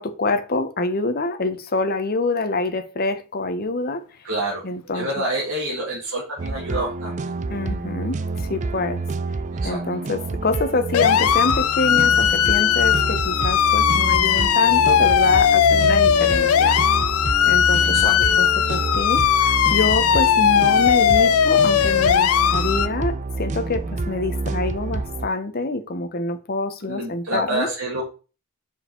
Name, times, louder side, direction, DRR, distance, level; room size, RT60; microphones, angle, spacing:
voice 1, 0.0-4.1 4.6-5.1 7.5-9.0 9.6-16.8 17.5-17.9 18.4-27.7, left 3 dB, 40° left, 0.7 m, -26 dB
voice 2, 4.2-4.6 4.9-7.2 9.5-10.0 17.8-18.3 18.8-18.9 26.8-28.0, right 1 dB, 65° right, 1.8 m, -28 dB
sound 1, 6.4-25.3, right 3 dB, 35° right, 0.4 m, -28 dB
sound 2, 10.9-22.9, left 9 dB, 75° left, 0.4 m, -18 dB
5.3 x 4.9 x 4.3 m
head